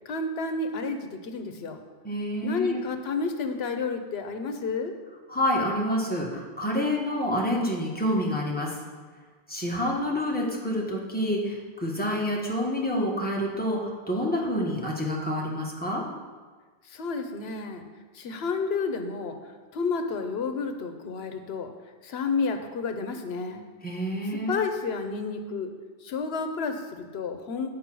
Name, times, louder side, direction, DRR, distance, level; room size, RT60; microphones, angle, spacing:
voice 1, 0.0-1.8 2.4-4.9 16.9-17.9 18.1-19.4 19.7-21.7 22.0-23.7 24.3-25.8 26.0-27.7, left 4 dB, 85° left, 7 dB, 1.0 m, -30 dB
voice 2, 2.0-2.8 5.3-8.7 9.5-16.0 23.8-24.6, equal, 10° left, -3 dB, 1.4 m, -28 dB
8.3 x 5.1 x 6.1 m, 1.4 s
omnidirectional pair, 1.0 m